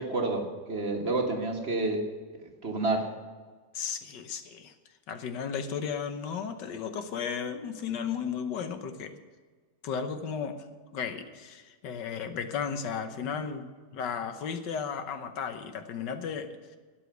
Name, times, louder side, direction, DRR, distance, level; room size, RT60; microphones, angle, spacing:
voice 1, 0.0-2.0 2.6-3.1, right 2 dB, 40° right, 2 dB, 1.6 m, -29 dB
voice 2, 3.7-4.7 5.1-9.2 9.8-10.6 10.9-16.8, left 6 dB, 85° left, 8 dB, 1.7 m, -34 dB
13.0 x 8.4 x 8.0 m, 1.4 s
omnidirectional pair, 1.8 m